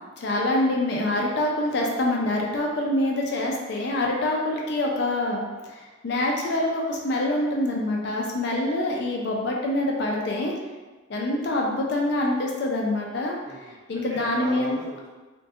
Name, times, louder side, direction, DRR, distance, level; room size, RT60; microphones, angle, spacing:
voice 1, 0.2-10.5 11.1-13.4 13.9-14.8, left 1 dB, 55° left, -1 dB, 0.4 m, -25 dB
voice 2, 13.4-15.1, right 2 dB, 15° right, -6 dB, 0.4 m, -39 dB
2.3 x 2.2 x 2.6 m, 1.3 s
head